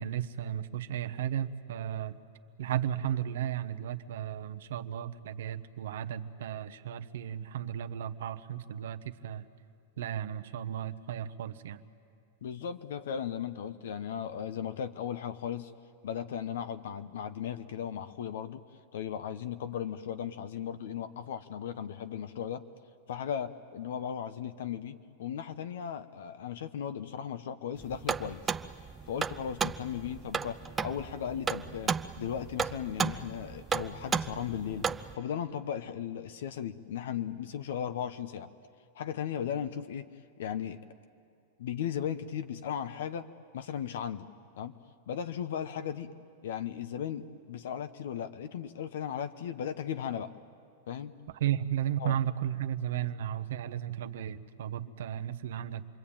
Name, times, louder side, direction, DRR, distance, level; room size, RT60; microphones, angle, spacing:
voice 1, 0.0-2.2 2.6-9.5 10.0-11.8 51.4-55.9, right 10 dB, 75° right, 9 dB, 1.1 m, -34 dB
voice 2, 12.4-15.7 16.0-18.6 18.9-22.6 23.1-28.4 29.1-34.9 35.1-38.5 38.9-40.1 40.4-40.8 41.6-43.3 43.5-44.3 44.6-44.8 45.1-46.1 46.4-50.3 50.9-51.1 52.0-52.2 52.9-53.1, left 9 dB, 75° left, 10 dB, 0.9 m, -36 dB
sound 1, 27.8-35.1, right 6 dB, 15° right, 0.6 m, -34 dB
27.5 x 22.0 x 8.8 m, 2.5 s
hypercardioid pair, 135°, 0 cm